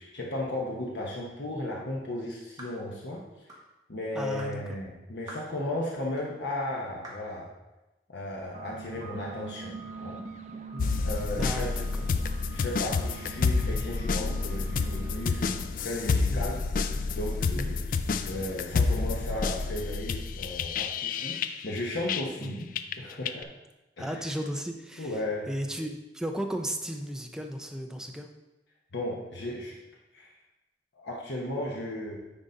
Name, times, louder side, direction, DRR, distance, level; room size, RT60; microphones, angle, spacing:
voice 1, 0.0-3.2 3.9-7.5 8.1-10.2 11.0-11.7 12.5-15.4 15.8-17.8 18.3-22.7 23.0-23.5 24.0-24.2 25.0-25.5 28.9-29.8 30.1-30.3 30.9-32.2, left 1 dB, 85° left, -3 dB, 1.0 m, -35 dB
sound 1, 2.6-2.8 3.5-3.7 4.4-4.6 5.3-5.5 6.2-6.3 7.0-7.3, right 1 dB, 20° right, 1.5 m, -44 dB
voice 2, 4.1-4.8 10.7-11.1 11.4-12.1 16.3-16.6 17.5-17.8 22.4-22.7 24.0-25.2 25.5-28.3, equal, 5° right, 4 dB, 0.5 m, -35 dB
sound 2, 8.4-15.6, right 4 dB, 45° right, 0.7 m, -43 dB
sound 3, 10.8-22.5 22.8-23.4, left 4 dB, 50° left, 0.3 m, -29 dB
9.9 x 3.9 x 3.9 m, 1.0 s
head